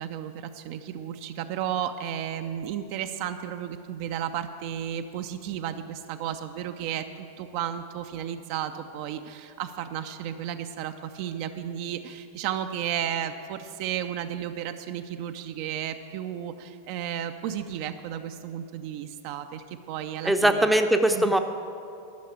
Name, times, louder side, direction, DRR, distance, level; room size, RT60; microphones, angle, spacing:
voice 1, 0.0-20.7 21.1-21.3, right 10 dB, 45° right, 8 dB, 0.4 m, -33 dB
voice 2, 20.2-21.4, right 1 dB, 5° right, 7 dB, 0.6 m, -21 dB
12.5 x 6.4 x 8.1 m, 2.6 s
figure-of-eight pair, 90°, 0 cm